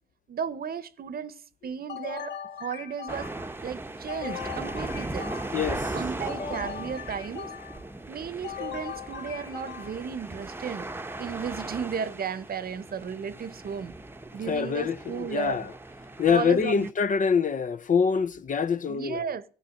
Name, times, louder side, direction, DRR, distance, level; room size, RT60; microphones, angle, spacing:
voice 1, 0.3-3.3 3.6-5.3 5.9-7.5 8.1-10.9 11.2-13.9 14.3-15.7 16.3-16.9 18.9-19.4, right 7 dB, 50° right, 0.9 m, -34 dB
sound 1, 1.9-3.6 4.1-5.8 6.3-7.9 8.4-10.1, left 8 dB, 60° left, 1.5 m, -39 dB
sound 2, 3.1-16.9, right 2 dB, 10° right, 0.9 m, -38 dB
voice 2, 5.5-6.0 14.4-15.7 16.2-19.3, left 6 dB, 40° left, 0.6 m, -25 dB
14.5 x 9.1 x 6.5 m
cardioid pair, 90°, 20 cm